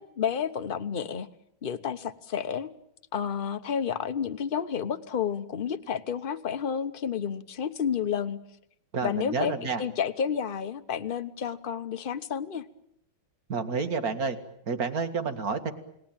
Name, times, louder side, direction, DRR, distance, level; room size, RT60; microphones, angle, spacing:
voice 1, 0.2-1.3 1.6-2.7 3.1-8.4 9.0-9.5 9.8-12.6, left 7 dB, 35° left, 9 dB, 0.9 m, -30 dB
voice 2, 8.9-9.8 13.5-14.4 14.7-15.7, right 5 dB, 45° right, 8 dB, 2.4 m, -29 dB
29.5 x 19.5 x 9.0 m, 0.78 s
omnidirectional pair, 2.2 m